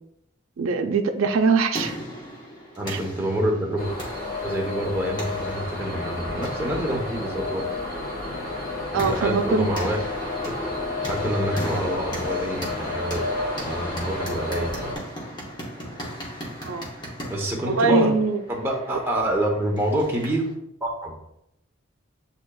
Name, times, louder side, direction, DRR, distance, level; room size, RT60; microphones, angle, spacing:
voice 1, 0.6-2.0 2.9-3.0 8.9-9.7 16.6-16.9 17.6-18.4, right 4 dB, 80° right, 7 dB, 0.4 m, -22 dB
sound 1, 1.3-20.5, equal, 20° left, 0.9 m, -39 dB
voice 2, 2.8-3.9 4.4-7.7 8.9-10.0 11.0-13.3 13.6-15.0 17.3-18.1 18.5-20.5 20.8-21.1, right 1 dB, 10° right, -2 dB, 0.7 m, -27 dB
sound 2, 3.8-15.0, left 2 dB, 45° left, 1.2 m, -31 dB
7.8 x 2.8 x 2.2 m, 0.79 s
head